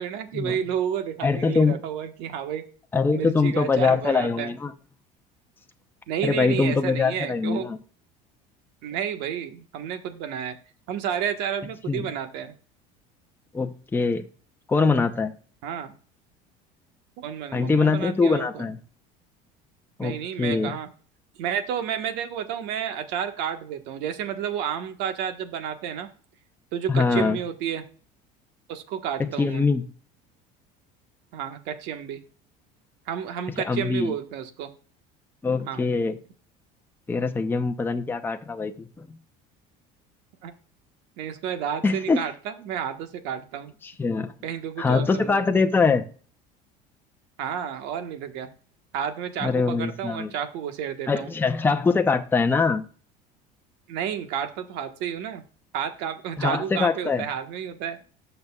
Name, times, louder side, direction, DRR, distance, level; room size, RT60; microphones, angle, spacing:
voice 1, 0.0-2.7 3.1-4.5 6.1-7.7 8.8-10.6 10.9-12.5 15.6-15.9 17.2-18.7 20.0-20.9 21.4-26.1 26.7-27.8 28.7-29.7 31.3-32.2 33.1-34.7 35.6-35.8 40.4-40.5 41.2-43.7 44.4-45.4 47.4-48.5 48.9-51.3 53.9-55.4 55.7-58.0, right 9 dB, 70° right, 1.5 m, -31 dB
voice 2, 1.2-1.8 2.9-4.7 6.2-7.8 11.9-12.1 13.5-14.3 14.7-15.3 17.5-18.8 20.0-20.7 26.9-27.4 29.4-29.9 33.6-34.1 35.4-36.2 37.1-39.1 41.8-42.2 43.8-44.3 44.8-46.1 49.4-50.3 51.1-52.8 56.4-57.3, left 4 dB, 10° left, 0.8 m, -23 dB
18.5 x 6.9 x 2.4 m
cardioid pair, 130°, 18 cm